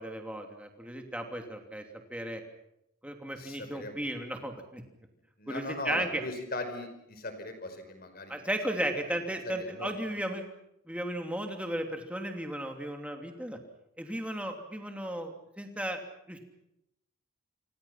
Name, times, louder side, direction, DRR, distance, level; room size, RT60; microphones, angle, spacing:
voice 1, 0.0-1.8 2.1-2.4 3.0-4.8 5.5-6.2 8.3-10.4 10.9-13.6 14.0-16.0 16.3-16.4, right 1 dB, 5° right, 4 dB, 3.0 m, -35 dB
voice 2, 3.4-4.0 5.4-8.4 9.4-9.9, left 2 dB, 45° left, 8 dB, 5.1 m, -39 dB
28.5 x 25.5 x 5.9 m, 0.83 s
head